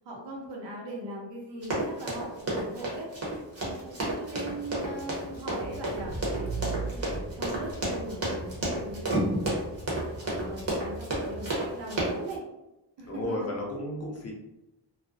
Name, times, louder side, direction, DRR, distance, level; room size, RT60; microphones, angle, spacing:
voice 1, 0.0-3.1 3.6-7.0 7.3-9.6 10.2-12.4 13.0-13.5, right 1 dB, 85° right, -2 dB, 0.8 m, -40 dB
Run, 1.6-12.3, right 1 dB, 35° right, 0.8 m, -31 dB
Car / Engine, 3.6-11.9, right 2 dB, 5° left, 0.9 m, -40 dB
voice 2, 13.1-14.3, left 1 dB, 35° left, -1 dB, 0.6 m, -33 dB
2.4 x 2.1 x 2.5 m, 0.94 s
wide cardioid pair, 130°, 42 cm